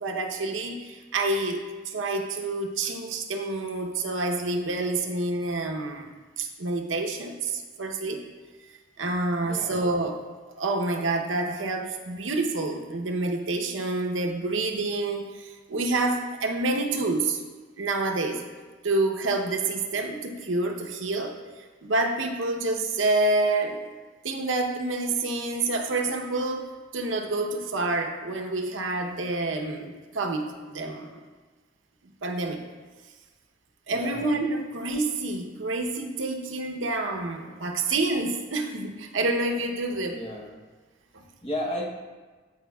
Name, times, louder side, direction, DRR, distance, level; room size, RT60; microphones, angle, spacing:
voice 1, 0.0-8.2 9.0-10.2 10.6-17.4 17.8-18.4 18.8-24.0 24.2-31.2 32.2-32.6 33.9-40.2 41.1-41.2, right 2 dB, 90° right, 3 dB, 0.8 m, -28 dB
voice 2, 9.4-9.8 33.9-34.3 37.4-37.7 40.1-40.6 41.4-41.9, equal, 30° left, 0 dB, 0.8 m, -34 dB
14.0 x 5.1 x 2.3 m, 1.3 s
head